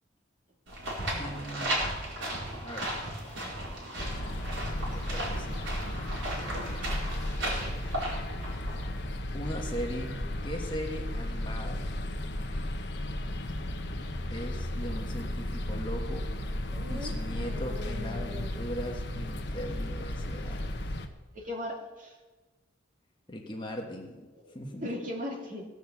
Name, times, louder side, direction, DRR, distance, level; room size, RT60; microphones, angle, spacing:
sound 1, 0.7-9.0, right 1 dB, 75° right, 4.6 m, -35 dB
voice 1, 1.1-1.8 2.6-2.9 4.8-5.5 9.3-11.9 14.3-16.3 16.9-20.8 23.3-24.3 24.5-24.9, equal, 25° left, 1 dB, 1.4 m, -39 dB
sound 2, 4.0-21.1, left 1 dB, 60° left, 1.0 m, -34 dB
voice 2, 16.7-18.5 21.3-22.2 24.4-24.5 24.8-25.7, left 1 dB, 45° right, 0 dB, 2.4 m, -39 dB
17.5 x 6.3 x 7.0 m, 1.2 s
head